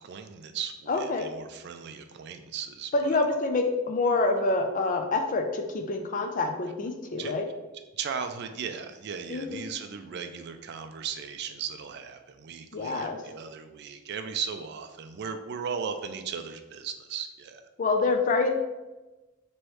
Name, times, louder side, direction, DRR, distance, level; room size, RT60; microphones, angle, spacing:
voice 1, 0.0-3.2 7.2-7.3 7.9-17.6, right 6 dB, 55° right, 8 dB, 0.4 m, -37 dB
voice 2, 0.9-1.3 2.9-7.4 9.3-9.6 12.7-13.2 17.8-18.5, left 3 dB, 40° left, 5 dB, 0.4 m, -26 dB
3.1 x 3.0 x 4.6 m, 1.1 s
head